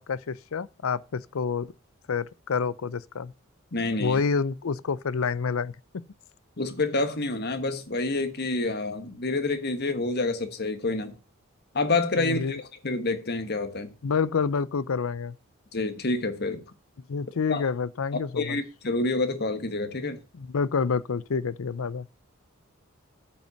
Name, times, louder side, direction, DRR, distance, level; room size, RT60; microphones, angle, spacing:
voice 1, 0.0-1.7 2.1-3.3 4.0-5.7 12.2-12.6 14.0-15.3 17.1-18.6 20.4-22.1, left 5 dB, 80° left, 0.5 m, -28 dB
voice 2, 3.7-4.2 6.6-11.1 11.7-13.9 15.7-16.6 17.5-17.6 18.4-20.2, left 3 dB, 50° left, 1.4 m, -28 dB
8.9 x 5.6 x 6.8 m
head